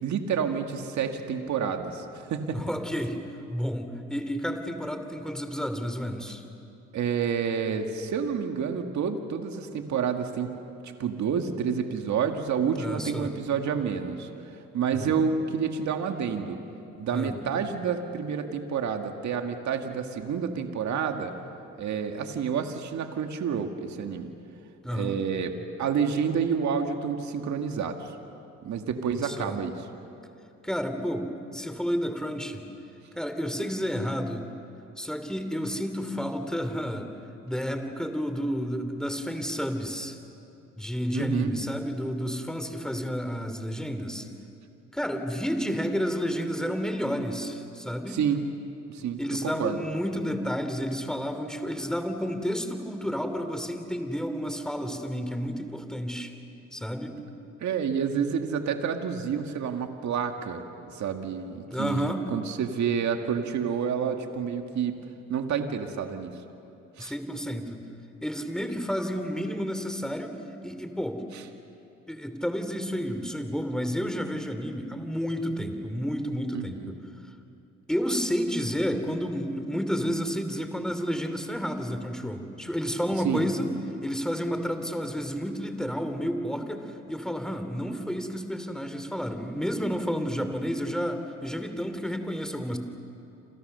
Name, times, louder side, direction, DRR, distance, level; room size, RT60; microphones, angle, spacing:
voice 1, 0.0-2.6 6.9-10.5 10.8-14.3 14.7-16.6 17.0-21.3 21.8-24.3 24.9-25.5 25.8-28.1 28.6-29.9 41.1-41.5 48.1-48.5 48.9-49.2 49.4-49.8 57.6-60.6 60.9-65.0 65.3-66.4 67.0-67.1 71.3-71.4 76.5-76.9 83.2-83.4, right 7 dB, 70° right, 5 dB, 1.9 m, -29 dB
voice 2, 2.5-3.2 3.5-6.4 12.8-13.3 14.9-15.1 16.7-16.8 17.1-17.4 24.8-25.2 29.1-29.6 30.6-32.7 33.2-34.4 35.0-37.1 37.4-40.2 40.8-44.3 44.9-48.2 49.2-56.3 56.7-57.1 61.7-62.2 67.0-67.9 68.2-70.3 70.6-71.2 72.1-77.0 77.9-83.7 84.0-92.8, equal, ahead, 7 dB, 2.9 m, -31 dB
28.5 x 27.5 x 6.8 m, 2.8 s
cardioid pair, 90°, 30 cm